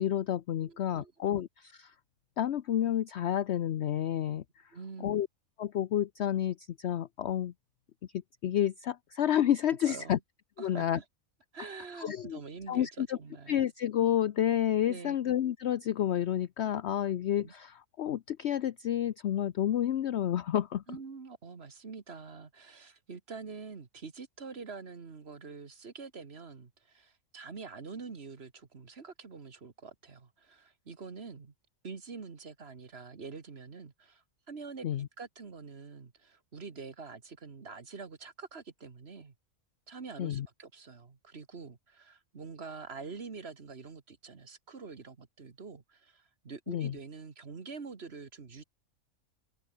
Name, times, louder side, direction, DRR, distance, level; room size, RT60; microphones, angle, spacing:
voice 1, 0.0-1.9 2.4-4.4 5.0-5.3 5.6-7.5 8.4-10.2 10.6-11.0 12.0-12.4 12.7-13.2 13.5-20.8 34.8-35.1 40.2-40.5 46.7-46.9, left 10 dB, 60° left, 0.9 m, -30 dB
voice 2, 0.6-1.4 4.7-5.2 9.8-10.2 10.6-11.1 11.5-13.7 14.9-15.2 17.4-17.5 20.9-31.5 31.8-39.3 39.9-48.6, right 4 dB, 50° right, 1.8 m, -46 dB
omnidirectional pair, 1.4 m